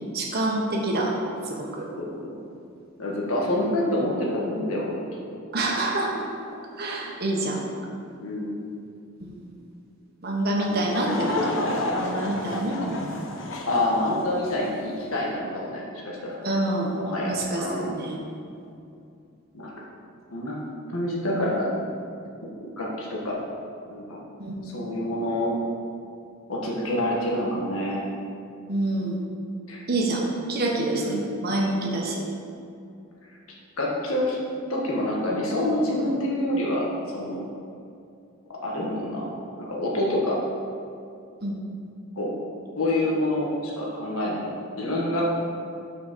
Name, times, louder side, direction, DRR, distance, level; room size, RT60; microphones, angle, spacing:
voice 1, 0.1-1.1 1.6-1.9 5.5-6.2 6.8-7.6 9.2-9.4 10.2-13.0 16.4-16.9 17.3-18.2 24.4-24.9 28.7-29.2 29.9-30.2 30.5-32.2 41.4-41.6, right 2 dB, 50° right, -2 dB, 1.3 m, -27 dB
voice 2, 2.0-2.4 3.0-5.0 8.2-8.6 13.7-16.4 16.9-17.9 19.5-19.7 20.3-20.6 20.9-21.7 22.4-22.5 22.8-23.4 23.9-24.2 24.6-25.5 26.5-28.1 29.7-29.8 30.9-31.3 33.8-34.4 34.7-36.9 37.1-37.4 38.6-39.3 39.6-40.4 42.1-42.4 42.8-45.3, left 1 dB, 90° left, -3 dB, 1.5 m, -27 dB
Laughter / Crowd, 10.6-14.8, left 2 dB, 65° left, 0.9 m, -30 dB
6.3 x 5.1 x 6.7 m, 2.5 s
head